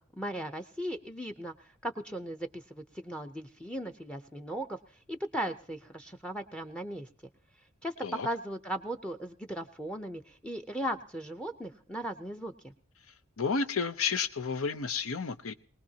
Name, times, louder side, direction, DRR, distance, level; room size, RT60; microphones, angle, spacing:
voice 1, 0.0-1.5 1.8-4.8 5.1-7.1 7.8-7.9 8.2-12.7, right 1 dB, 5° left, 0.6 m, -37 dB
voice 2, 13.4-15.5, left 5 dB, 70° left, 0.8 m, -31 dB
21.5 x 19.5 x 2.8 m
head